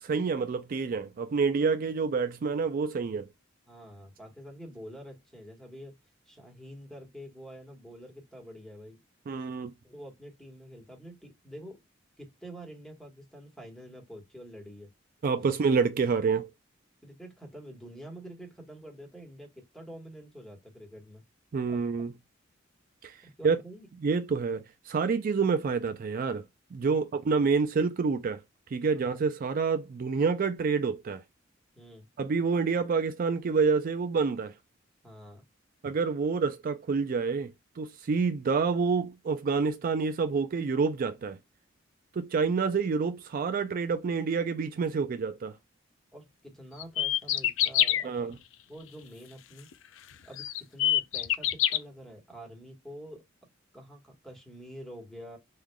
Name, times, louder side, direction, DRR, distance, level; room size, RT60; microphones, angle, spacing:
voice 1, 0.0-3.3 9.3-9.7 15.2-16.5 21.5-22.1 23.0-23.6 24.0-26.4 26.7-28.4 28.7-31.2 32.2-34.5 35.8-41.4 42.1-45.6 48.0-48.3, right 5 dB, 45° right, 0.3 m, -28 dB
voice 2, 3.7-6.0 6.3-9.0 9.8-11.8 12.2-14.9 17.0-21.2 21.7-22.1 23.2-23.9 26.8-27.0 28.9-29.0 31.7-32.1 35.0-35.4 46.1-48.3 48.7-49.7 50.2-53.2 53.7-55.4, equal, 5° left, 1.3 m, -47 dB
sound 1, 46.8-48.0 49.7-49.8 50.4-51.8, left 12 dB, 75° left, 0.4 m, -25 dB
3.7 x 3.2 x 2.2 m
head